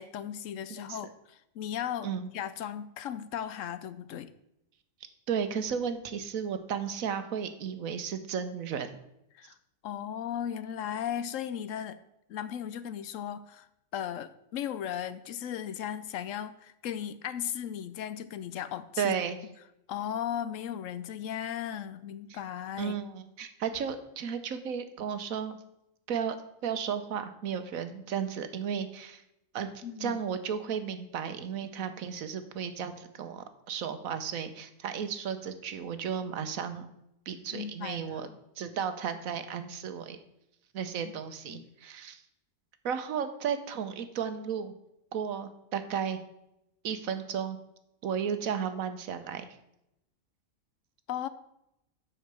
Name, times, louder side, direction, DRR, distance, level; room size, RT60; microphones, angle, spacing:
voice 1, 0.0-4.3 9.3-9.6 9.8-12.0 12.3-13.7 13.9-19.1 19.9-23.0 29.8-30.2 37.5-38.3 41.0-41.1 41.5-41.7 51.1-51.3, left 9 dB, 75° left, 14 dB, 0.9 m, -36 dB
voice 2, 5.3-8.9 19.0-19.4 22.3-22.4 22.8-25.6 26.1-26.4 26.6-29.2 29.5-36.9 37.3-38.3 38.6-40.2 40.7-42.2 42.8-44.7 45.1-46.2 46.8-47.6 48.0-49.5, right 7 dB, 80° right, 10 dB, 1.3 m, -34 dB
7.8 x 5.6 x 6.8 m, 0.83 s
omnidirectional pair, 1.4 m